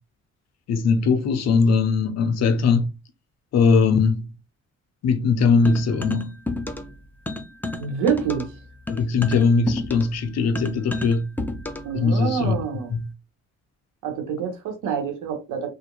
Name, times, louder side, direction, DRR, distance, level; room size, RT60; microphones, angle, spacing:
voice 1, 0.7-2.9 3.5-4.3 5.0-6.3 8.9-11.3 11.9-12.6 12.9-13.1, left 4 dB, 60° left, 0.6 m, -20 dB
sound 1, 5.7-7.0 7.3-12.0, left 2 dB, 5° left, 0.4 m, -31 dB
voice 2, 7.8-8.5 11.8-12.9 14.0-15.7, right 7 dB, 85° right, 1.0 m, -26 dB
2.4 x 2.1 x 3.0 m
cardioid pair, 90°, 30 cm